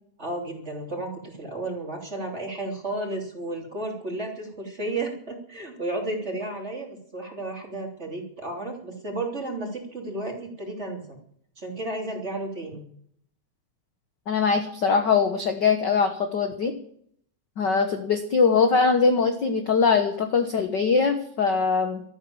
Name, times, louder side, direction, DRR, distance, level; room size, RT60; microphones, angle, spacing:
voice 1, 0.2-11.2 11.6-12.8, right 2 dB, 20° right, 1 dB, 3.3 m, -33 dB
voice 2, 14.3-16.7 17.6-22.0, left 5 dB, 55° left, 6 dB, 1.2 m, -22 dB
13.5 x 12.0 x 7.2 m, 0.64 s
omnidirectional pair, 3.6 m